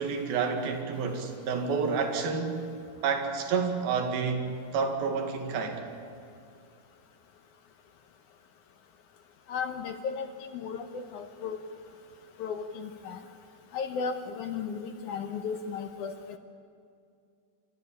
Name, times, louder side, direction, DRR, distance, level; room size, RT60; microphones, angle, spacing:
voice 1, 0.0-2.7 3.0-4.5 4.7-5.8, right 5 dB, 90° right, 4 dB, 3.8 m, -29 dB
voice 2, 9.5-11.6 12.4-13.2 13.7-16.4, left 6 dB, 70° left, 6 dB, 2.2 m, -35 dB
29.0 x 14.0 x 9.9 m, 2.4 s
omnidirectional pair, 4.1 m